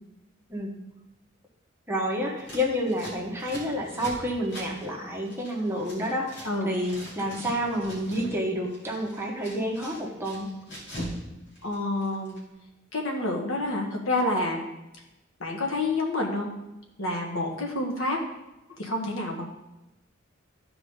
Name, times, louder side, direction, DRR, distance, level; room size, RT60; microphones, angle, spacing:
voice 1, 1.9-10.5, equal, 10° right, -2 dB, 1.4 m, -29 dB
Scissors, 2.4-6.5 6.7-8.3 8.6-11.2 11.5-12.4, equal, 60° left, 3.4 m, -41 dB
voice 2, 11.6-12.4 12.9-14.7 15.4-16.5 17.0-18.2 18.8-19.5, left 2 dB, 75° left, 0 dB, 1.7 m, -28 dB
14.0 x 4.9 x 3.9 m, 0.98 s
head